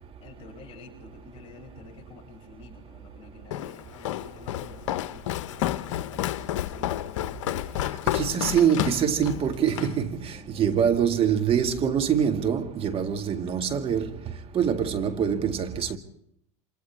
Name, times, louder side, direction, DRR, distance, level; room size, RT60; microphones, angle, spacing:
voice 1, 0.2-7.4 8.0-8.6 10.3-11.3, left 4 dB, 35° left, 7.9 m, -49 dB
Walk footsteps, 3.5-10.0, left 13 dB, 75° left, 0.8 m, -30 dB
voice 2, 8.1-14.1 14.5-16.0, right 8 dB, 35° right, 2.0 m, -24 dB
29.0 x 26.0 x 3.5 m
hypercardioid pair, 95°, 16 cm